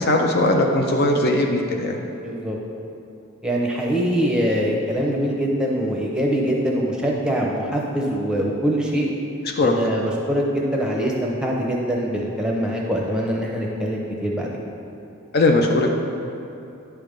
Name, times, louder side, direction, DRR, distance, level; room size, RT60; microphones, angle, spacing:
voice 1, 0.0-2.0 9.6-9.7 15.3-15.9, left 2 dB, 45° left, 2 dB, 0.5 m, -19 dB
voice 2, 2.1-2.6 3.4-9.1 9.6-14.5, equal, 5° right, -2 dB, 0.7 m, -23 dB
10.0 x 3.4 x 5.2 m, 2.8 s
head